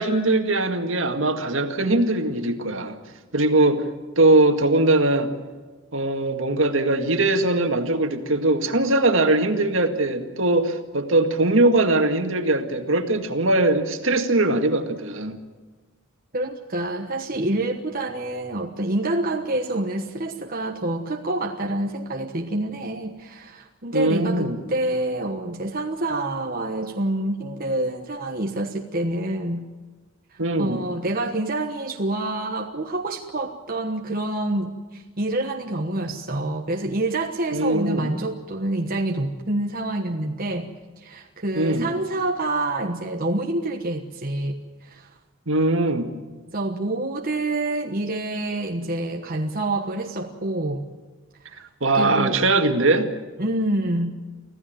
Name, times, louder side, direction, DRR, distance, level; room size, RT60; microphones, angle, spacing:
voice 1, 0.0-3.0 3.3-3.9 4.2-5.3 5.9-15.4 23.9-24.6 30.4-30.8 37.5-38.1 41.6-41.9 45.5-46.1 51.8-53.1, right 2 dB, 70° right, 6 dB, 2.0 m, -21 dB
voice 2, 16.3-29.7 30.3-40.7 41.0-45.1 46.5-50.8 51.4-51.6 51.9-52.4 53.4-54.1, right 2 dB, 45° right, 2 dB, 1.2 m, -27 dB
25.5 x 15.5 x 9.2 m, 1.3 s
head